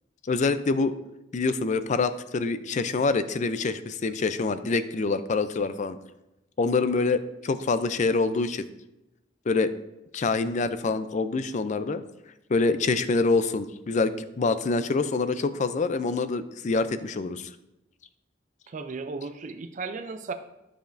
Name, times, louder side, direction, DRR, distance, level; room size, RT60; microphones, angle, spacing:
voice 1, 0.3-0.9 1.3-6.0 6.6-8.7 9.5-9.7 10.1-12.0 12.5-14.1 14.4-17.5, left 3 dB, 40° left, 12 dB, 0.4 m, -25 dB
voice 2, 18.7-20.3, right 4 dB, 40° right, 8 dB, 0.4 m, -35 dB
12.5 x 5.0 x 2.6 m, 0.93 s
head